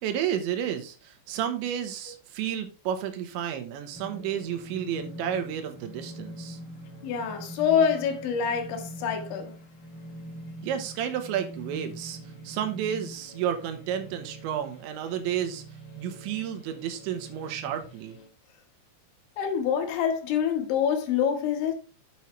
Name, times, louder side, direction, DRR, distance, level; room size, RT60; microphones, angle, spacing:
voice 1, 0.0-6.6 10.6-12.2 12.4-15.6 16.0-18.2, right 9 dB, 75° right, 3.3 m, -31 dB
sound 1, 3.9-18.3, right 1 dB, 55° left, 4.5 m, -44 dB
voice 2, 7.0-9.5 19.4-21.7, left 7 dB, 80° left, 3.8 m, -26 dB
9.0 x 7.5 x 3.2 m
omnidirectional pair, 5.4 m